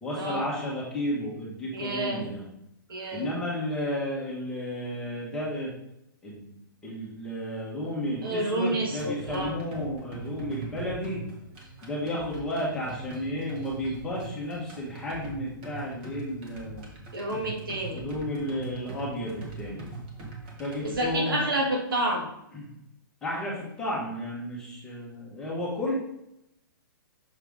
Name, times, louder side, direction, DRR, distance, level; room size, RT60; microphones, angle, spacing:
voice 1, 0.0-2.4 3.1-5.7 6.2-6.6 6.8-11.2 11.8-16.8 17.9-19.9 20.6-21.4 22.5-22.7 23.2-25.9, left 1 dB, 5° left, -7 dB, 1.2 m, -32 dB
voice 2, 1.7-2.2 2.9-3.3 8.2-9.6 17.1-18.1 20.8-22.3, right 1 dB, 75° right, 0 dB, 2.0 m, -29 dB
sound 1, 9.0-21.0, right 4 dB, 30° right, 1.3 m, -42 dB
6.4 x 5.5 x 3.5 m, 0.80 s
hypercardioid pair, 175°, 12 cm